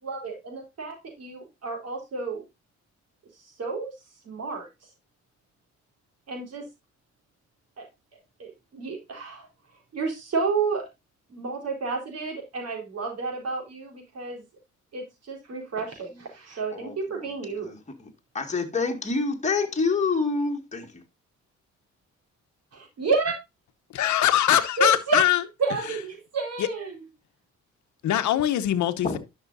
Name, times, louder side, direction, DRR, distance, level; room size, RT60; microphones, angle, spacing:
voice 1, 0.0-2.4 3.4-3.9 4.2-4.7 6.3-6.7 7.8-7.9 8.4-9.5 9.9-10.9 11.3-14.4 14.9-17.7 22.7-23.4 24.8-25.2 25.6-27.0, right 4 dB, 55° right, 4.1 m, -30 dB
voice 2, 16.7-17.3 17.6-18.1 18.3-21.0 29.0-29.2, left 4 dB, 25° left, 2.0 m, -27 dB
voice 3, 23.9-25.4 26.6-26.7 28.0-29.2, left 12 dB, 70° left, 0.9 m, -22 dB
10.5 x 6.4 x 2.6 m
cardioid pair, 90°, 30 cm